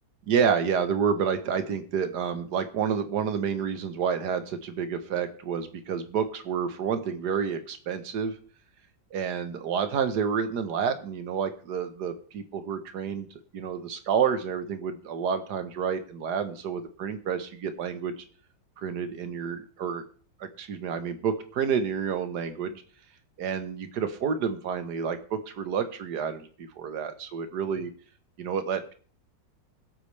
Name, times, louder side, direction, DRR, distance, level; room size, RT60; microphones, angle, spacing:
voice 1, 0.3-8.3 9.1-13.3 13.5-18.1 18.8-20.0 20.4-22.8 23.4-27.9 28.4-28.9, right 7 dB, 65° right, 10 dB, 1.6 m, -29 dB
20.5 x 8.4 x 3.3 m, 0.43 s
omnidirectional pair, 2.0 m